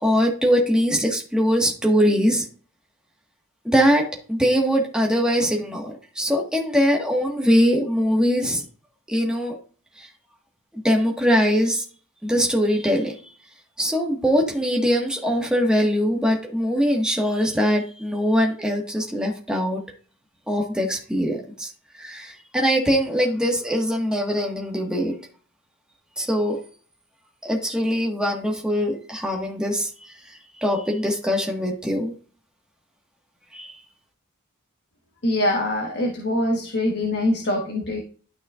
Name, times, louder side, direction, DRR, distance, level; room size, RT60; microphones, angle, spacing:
voice 1, 0.0-2.5 3.6-8.6 9.1-9.5 10.0-10.1 10.8-11.8 12.2-13.1 13.8-19.8 20.5-21.7 22.0-25.1 26.2-26.6 27.4-29.9 30.2-32.1 33.5-33.8, equal, 5° right, -1 dB, 1.5 m, -22 dB
voice 2, 35.2-38.0, left 1 dB, 50° left, 0 dB, 1.4 m, -23 dB
12.0 x 5.7 x 2.5 m, 0.41 s
head